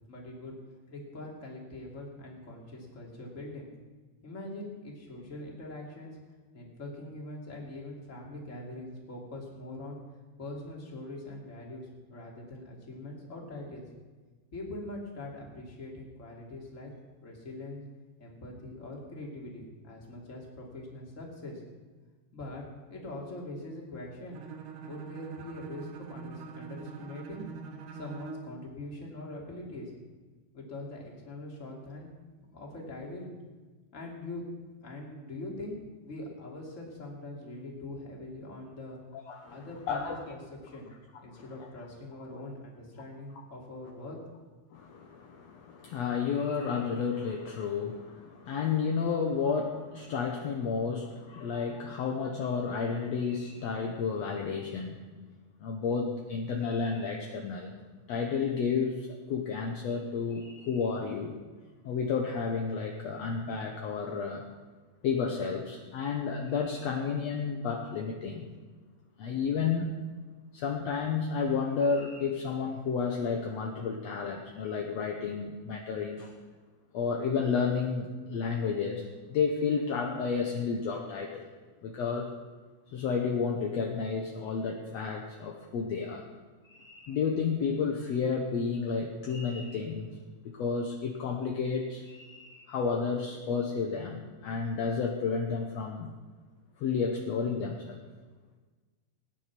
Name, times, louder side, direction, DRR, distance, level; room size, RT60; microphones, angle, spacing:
voice 1, 0.1-0.6 0.9-3.7 4.2-6.2 6.5-10.0 10.4-13.9 14.5-16.9 17.2-17.8 18.2-21.6 22.3-22.6 22.9-24.4 24.8-27.5 27.9-29.9 30.5-32.1 32.5-33.3 33.9-34.4 34.8-39.0 39.5-40.9 41.2-44.2, left 2 dB, 20° left, -2 dB, 2.6 m, -42 dB
Bowed string instrument, 24.3-28.6, right 5 dB, 70° right, 2.7 m, -43 dB
voice 2, 39.1-40.2 41.3-41.7 44.7-55.0 55.6-57.7 58.1-61.3 61.8-64.4 65.0-68.5 69.2-69.9 70.5-76.3 76.9-81.5 81.8-82.3 82.9-86.3 86.6-90.1 90.4-96.1 96.8-98.0, left 5 dB, 65° left, 1 dB, 1.7 m, -31 dB
18.5 x 9.9 x 6.0 m, 1.3 s
omnidirectional pair, 4.3 m